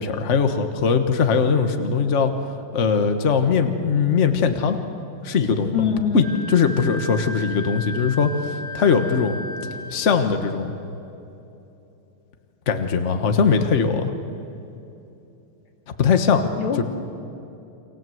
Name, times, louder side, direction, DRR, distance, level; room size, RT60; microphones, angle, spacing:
voice 1, 0.0-2.3 2.7-4.8 5.2-5.8 6.1-9.3 9.9-10.7 12.7-14.1 16.0-16.4 16.8-16.9, left 5 dB, 40° left, 6 dB, 1.5 m, -20 dB
voice 2, 5.7-6.3 16.6-16.8, left 7 dB, 90° left, 3 dB, 2.9 m, -23 dB
Wind instrument woodwind instrument, 6.2-10.1, left 1 dB, 5° left, 3.1 m, -35 dB
29.5 x 25.0 x 7.9 m, 2.9 s
omnidirectional pair, 2.3 m